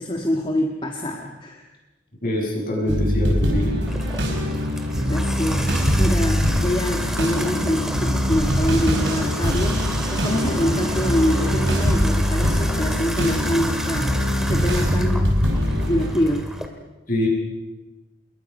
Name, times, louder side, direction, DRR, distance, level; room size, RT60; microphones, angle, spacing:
voice 1, 0.0-1.6 5.0-15.4 15.9-16.5, equal, 25° left, 2 dB, 1.7 m, -25 dB
voice 2, 2.2-3.7 17.1-17.3, left 1 dB, 45° left, -1 dB, 7.3 m, -24 dB
sound 1, 2.9-16.1, equal, 60° right, 5.2 m, -22 dB
Water tap faucet / Bathtub (filling or washing), 3.9-16.7, equal, 5° right, 2.2 m, -30 dB
27.5 x 22.5 x 5.5 m, 1.1 s
head